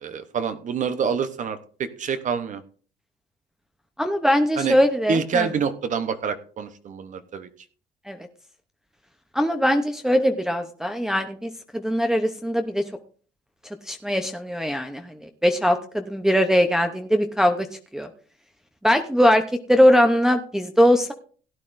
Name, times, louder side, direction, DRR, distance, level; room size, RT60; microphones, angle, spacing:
voice 1, 0.0-2.6 4.6-4.8 5.1-7.5, right 6 dB, 50° right, 10 dB, 0.9 m, -27 dB
voice 2, 4.0-5.5 8.1-8.2 9.3-12.8 13.9-15.1 15.4-17.7 17.9-18.1 18.8-19.4 19.7-21.1, equal, 5° right, 4 dB, 0.7 m, -21 dB
17.0 x 9.8 x 2.6 m, 0.43 s
cardioid pair, 110°, 17 cm